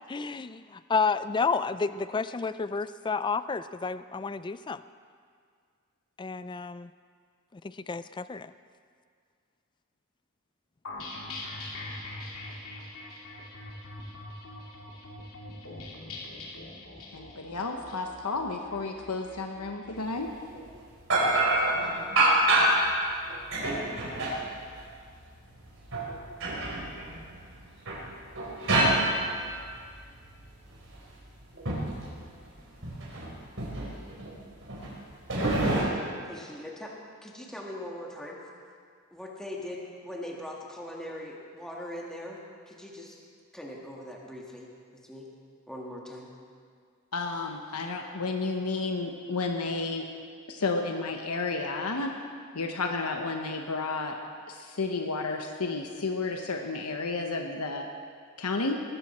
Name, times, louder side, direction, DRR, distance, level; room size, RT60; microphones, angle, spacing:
voice 1, 0.1-4.8 6.2-6.9 7.5-8.5, left 4 dB, 20° left, 14 dB, 0.3 m, -31 dB
sound 1, 10.8-20.3, left 2 dB, 65° left, 2.8 m, -42 dB
voice 2, 17.1-20.3 47.1-50.1 50.5-52.2 52.5-54.2 54.5-57.9 58.4-58.8, left 3 dB, 85° left, 3 dB, 1.1 m, -32 dB
sound 2, 20.5-20.6 21.1-22.9 23.3-24.9 25.6-27.6 27.9-30.0 30.3-32.0 32.3-32.5 32.8-33.3 33.6-34.3 34.6-34.9 35.3-35.8, right 1 dB, 60° right, 4.2 m, -26 dB
voice 3, 36.2-36.9 37.2-38.4 39.1-42.4 42.7-43.1 43.5-44.7 45.0-45.2 45.7-46.3, left 1 dB, 5° left, -3 dB, 1.7 m, -40 dB
19.5 x 14.0 x 4.3 m, 2.1 s
head